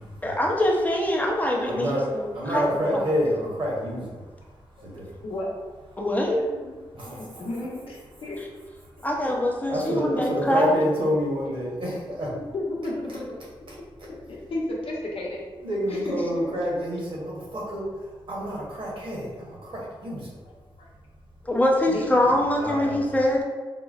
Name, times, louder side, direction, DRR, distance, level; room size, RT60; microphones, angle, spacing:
voice 1, 0.2-2.6 2.9-3.0 6.0-6.4 9.0-10.8 21.5-23.4, left 1 dB, 15° left, -1 dB, 0.6 m, -23 dB
voice 2, 1.7-4.2 4.8-5.0 6.9-7.5 9.7-12.3 13.7-13.8 15.6-17.8 18.3-20.3 22.2-22.3 22.6-23.1, equal, 60° right, -4 dB, 0.9 m, -28 dB
voice 3, 6.3-8.5 9.0-9.1 10.3-10.4 12.3-13.4 14.0-15.4 15.9-16.5 20.4-20.9 21.9-22.1, left 2 dB, 70° left, -3 dB, 0.8 m, -33 dB
3.7 x 2.0 x 2.4 m, 1.4 s
cardioid pair, 65°, 10 cm